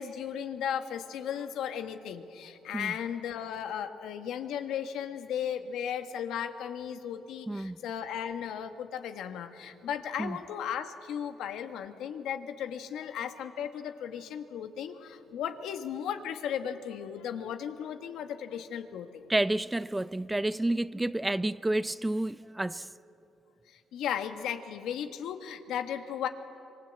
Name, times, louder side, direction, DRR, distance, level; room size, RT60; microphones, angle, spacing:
voice 1, 0.0-19.3 23.7-26.3, left 9 dB, 85° left, 1.5 m, -36 dB
voice 2, 7.5-7.8 10.2-10.4 19.3-22.9, right 1 dB, 10° right, 0.5 m, -30 dB
25.5 x 23.0 x 8.2 m
cardioid pair, 90°, 0 cm